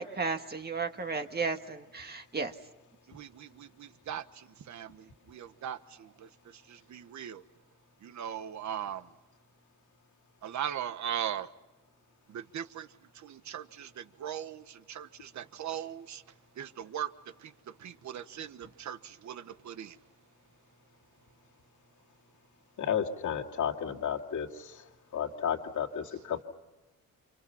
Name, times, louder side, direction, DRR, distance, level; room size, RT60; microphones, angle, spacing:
voice 1, 0.0-2.5, right 4 dB, 30° right, 1.7 m, -34 dB
voice 2, 3.1-7.4 8.0-9.1 10.4-11.5 12.3-12.9 13.1-16.2 16.6-17.1 17.4-17.5 17.8-20.0, right 10 dB, 55° right, 1.4 m, -39 dB
voice 3, 22.8-24.8 25.1-26.4, left 8 dB, 55° left, 2.5 m, -32 dB
29.5 x 28.0 x 5.8 m
cardioid pair, 125°, 35 cm